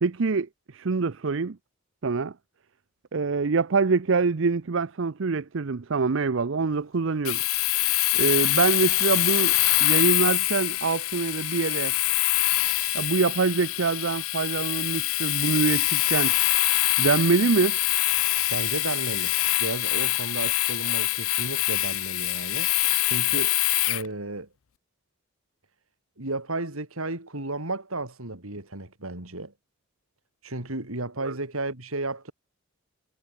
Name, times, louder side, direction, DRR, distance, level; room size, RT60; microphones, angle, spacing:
voice 1, 0.0-1.6 2.0-2.3 3.1-7.4 8.1-11.9 12.9-16.3 17.0-17.8 31.2-31.3, right 4 dB, 60° right, 0.6 m, -25 dB
Domestic sounds home sounds, 7.2-24.1, left 19 dB, 75° left, 0.5 m, -24 dB
voice 2, 18.5-19.3 19.6-22.7 23.0-23.5 23.9-24.5 26.2-29.5 30.4-32.3, right 2 dB, 80° right, 4.5 m, -33 dB
head